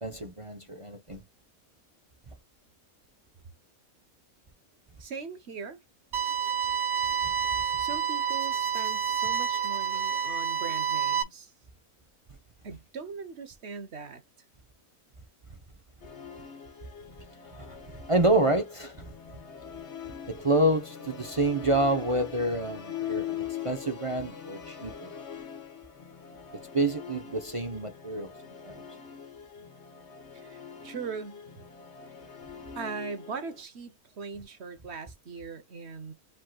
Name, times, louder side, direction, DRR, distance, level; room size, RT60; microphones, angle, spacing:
voice 1, 0.0-1.2 17.6-17.7 18.1-18.9 20.3-25.1 26.7-28.3 28.6-28.8, right 1 dB, 30° right, 0.7 m, -28 dB
voice 2, 5.0-5.8 7.8-11.5 12.6-14.2 30.3-31.4 32.7-36.1, right 5 dB, 55° right, 1.2 m, -40 dB
sound 1, 6.1-11.2, right 7 dB, 80° right, 1.4 m, -28 dB
Musical instrument, 16.0-33.6, left 9 dB, 55° left, 1.4 m, -42 dB
5.2 x 3.7 x 2.3 m
omnidirectional pair, 1.5 m